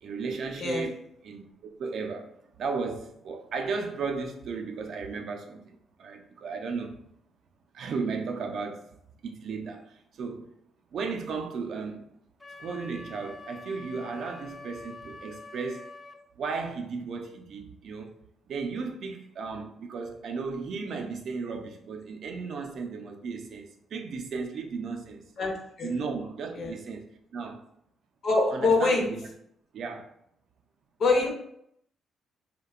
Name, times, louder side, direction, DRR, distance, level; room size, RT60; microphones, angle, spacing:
voice 1, 0.0-7.0 7.7-8.9 9.2-10.5 10.9-12.1 12.6-15.9 16.4-18.1 18.5-25.3 25.8-27.6 28.5-29.3 29.7-30.1, right 4 dB, 65° right, 0.4 m, -35 dB
Wind instrument woodwind instrument, 12.4-16.2, left 3 dB, 20° left, 0.3 m, -46 dB
voice 2, 25.4-25.9 26.5-26.7 28.2-29.0 31.0-31.3, left 3 dB, 60° left, 0.6 m, -24 dB
2.6 x 2.1 x 2.3 m
cardioid pair, 90°, 0 cm